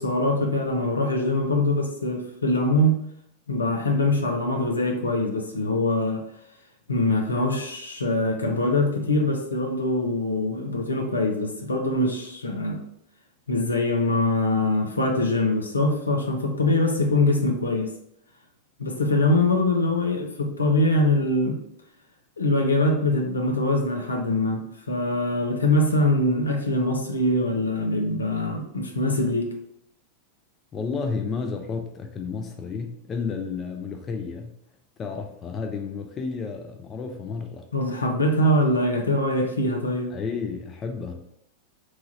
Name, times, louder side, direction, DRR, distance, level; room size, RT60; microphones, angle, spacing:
voice 1, 0.0-3.0 3.5-6.2 6.9-12.8 13.5-17.9 18.8-21.6 22.4-29.5 37.7-40.2, left 1 dB, 75° left, 2 dB, 0.6 m, -23 dB
voice 2, 30.7-34.6 35.0-37.6 40.1-41.1, left 5 dB, 25° left, 3 dB, 0.5 m, -31 dB
3.1 x 2.4 x 4.0 m, 0.74 s
figure-of-eight pair, 90°, 0 cm